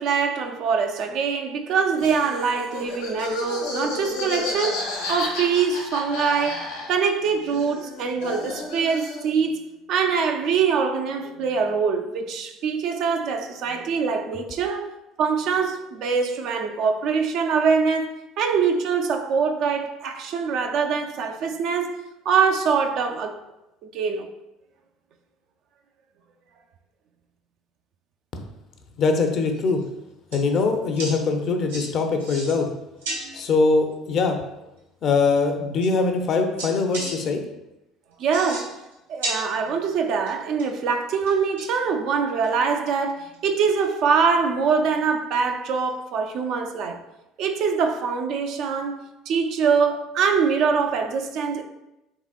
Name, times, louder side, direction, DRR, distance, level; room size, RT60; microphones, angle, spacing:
voice 1, 0.0-9.6 9.9-14.9 15.2-22.0 22.3-23.4 23.9-24.3 38.2-38.8 39.1-47.0 47.4-51.6, right 5 dB, 60° right, 0.4 m, -24 dB
Laughter, 2.0-7.2 7.4-9.4, left 2 dB, 85° left, 1.1 m, -32 dB
voice 2, 29.0-29.8 30.3-32.7 33.3-34.4 35.0-37.4, left 4 dB, 50° left, 0.5 m, -22 dB
sound 1, 29.5-29.8 30.3-30.6 30.9-31.1 31.7-31.9 32.2-32.7 33.0-33.4 34.8-34.9 35.4-35.5 35.8-36.3 36.6-37.1 38.2-38.9 39.2-39.9 40.3-40.8 41.3-41.9 42.4-42.5 42.9-43.0 43.3-43.5 43.8-43.9 45.9-46.0, right 2 dB, 90° right, 1.1 m, -33 dB
3.7 x 3.5 x 2.3 m
hypercardioid pair, 65°, 0 cm